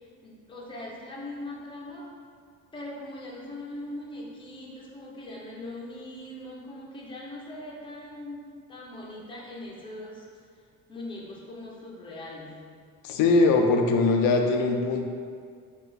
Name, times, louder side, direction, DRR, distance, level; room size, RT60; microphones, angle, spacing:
voice 1, 0.2-2.1 2.7-10.3 10.9-12.6, left 1 dB, 15° left, -4 dB, 0.6 m, -40 dB
voice 2, 13.0-15.0, left 3 dB, 85° left, 3 dB, 0.5 m, -21 dB
4.3 x 2.4 x 3.9 m, 2.1 s
cardioid pair, 145°, 33 cm